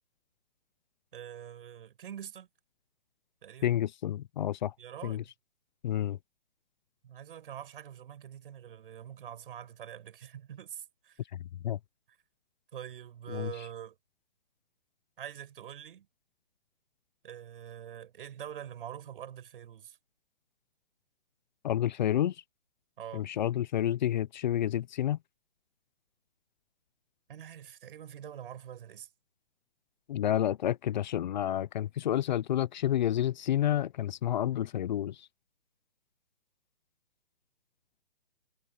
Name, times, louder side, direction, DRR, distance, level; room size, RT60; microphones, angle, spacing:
voice 1, 1.1-2.5 3.4-3.8 4.8-5.3 7.0-11.2 12.7-14.0 15.2-16.1 17.2-20.0 23.0-23.3 27.3-29.1, right 9 dB, 55° right, 7.6 m, -45 dB
voice 2, 3.6-4.7 5.0-5.2 5.8-6.2 11.6-11.8 13.3-13.5 21.6-22.3 23.1-25.2 30.1-35.3, left 11 dB, 40° left, 0.9 m, -29 dB
hypercardioid pair, 145°, 34 cm